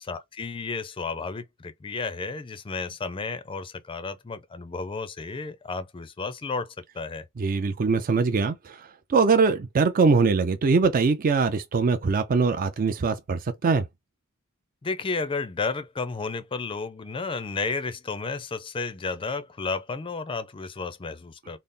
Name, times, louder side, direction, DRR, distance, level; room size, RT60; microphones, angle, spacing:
voice 1, 0.1-7.3 14.8-21.6, left 4 dB, 25° left, 0.4 m, -32 dB
voice 2, 7.4-8.8 9.1-13.8, right 4 dB, 40° right, 0.4 m, -22 dB
3.9 x 2.0 x 3.6 m
head